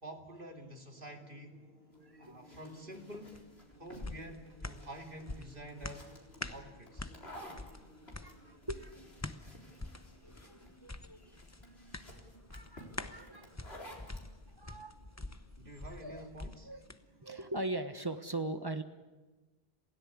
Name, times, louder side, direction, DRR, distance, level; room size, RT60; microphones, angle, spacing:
voice 1, 0.0-1.6 2.2-3.4 3.8-6.1 6.5-7.1 15.6-16.7, right 1 dB, 55° right, 3 dB, 3.0 m, -48 dB
sound 1, 0.9-17.5, equal, 75° right, 3.0 m, -62 dB
sound 2, 1.9-14.3, left 1 dB, 75° left, 4.4 m, -54 dB
voice 2, 2.0-2.3 8.2-8.9 10.2-11.3 12.5-13.7 14.5-15.0 16.0-16.3 16.6-16.8 17.2-18.8, right 2 dB, 25° right, 8 dB, 1.4 m, -41 dB
sound 3, 3.3-17.0 17.4-17.5, left 2 dB, 15° left, 0.8 m, -47 dB
27.5 x 16.5 x 8.6 m, 1.2 s
omnidirectional pair, 1.1 m